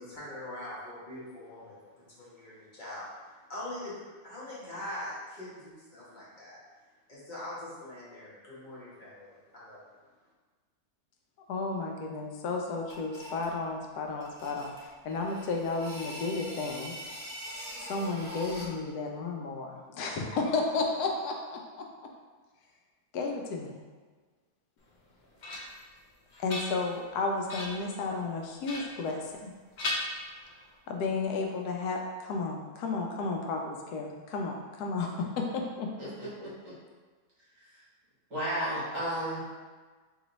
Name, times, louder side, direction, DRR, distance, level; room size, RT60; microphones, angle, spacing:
voice 1, 0.0-6.6 7.1-9.8, left 1 dB, 35° left, -8 dB, 1.2 m, -43 dB
voice 2, 11.5-17.0 17.8-21.9 23.1-23.8 26.4-29.5 30.9-35.9, left 3 dB, 90° left, 1 dB, 1.1 m, -33 dB
sound 1, 12.9-13.6 14.2-18.8, equal, 15° right, 1.0 m, -43 dB
sound 2, 24.9-25.9 26.3-27.1 27.5-27.9 28.6-29.5 29.8-30.7, left 1 dB, 50° left, 0.5 m, -37 dB
voice 3, 36.0-36.7 37.6-37.8 38.3-39.4, equal, 50° right, -9 dB, 1.4 m, -34 dB
3.1 x 3.0 x 3.9 m, 1.4 s
omnidirectional pair, 1.6 m